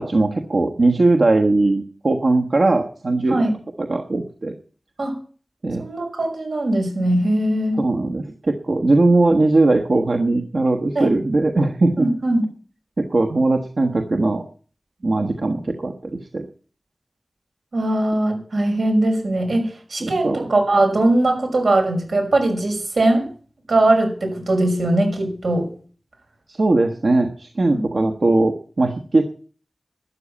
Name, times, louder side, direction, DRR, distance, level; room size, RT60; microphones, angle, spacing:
voice 1, 0.0-3.4 3.8-4.5 5.6-5.8 7.8-12.1 13.0-14.4 15.0-16.5 20.0-20.5 26.5-29.2, right 2 dB, 65° right, 3 dB, 1.3 m, -19 dB
voice 2, 5.8-7.8 11.0-11.1 12.0-12.4 17.7-23.3 23.7-25.7 27.7-27.8, right 1 dB, 90° right, 3 dB, 5.7 m, -20 dB
12.5 x 10.0 x 8.4 m, 0.43 s
wide cardioid pair, 75°, 0 cm